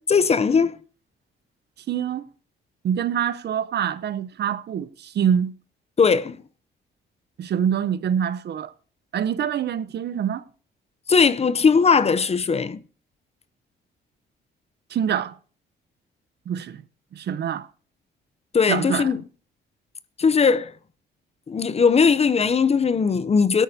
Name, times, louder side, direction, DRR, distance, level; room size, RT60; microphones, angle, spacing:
voice 1, 0.1-0.8 6.0-6.4 11.1-12.8 18.5-19.2 20.2-20.7 21.5-23.6, left 5 dB, 30° left, 0.6 m, -19 dB
voice 2, 1.9-2.2 2.8-5.5 7.4-8.7 9.1-10.4 14.9-15.4 16.5-16.8 17.1-17.7 18.7-19.2, right 8 dB, 55° right, 0.7 m, -25 dB
16.5 x 13.0 x 2.7 m
cardioid pair, 90°, 20 cm